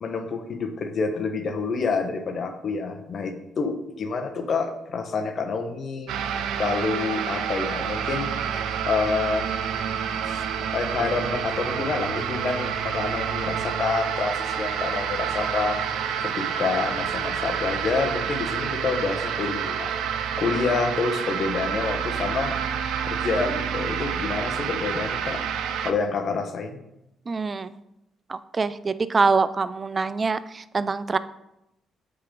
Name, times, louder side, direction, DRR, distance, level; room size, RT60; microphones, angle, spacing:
voice 1, 0.0-6.1 6.6-8.3 8.9-9.5 10.2-10.4 10.7-15.8 16.2-19.9 20.4-22.5 23.0-25.4 25.8-26.8, left 4 dB, 50° left, 6 dB, 1.0 m, -28 dB
sound 1, 6.1-25.9, right 8 dB, 85° right, 0.6 m, -28 dB
voice 2, 27.3-27.7 28.3-31.2, right 4 dB, 35° right, 15 dB, 0.4 m, -24 dB
8.2 x 3.7 x 5.1 m, 0.88 s
cardioid pair, 90°, 0 cm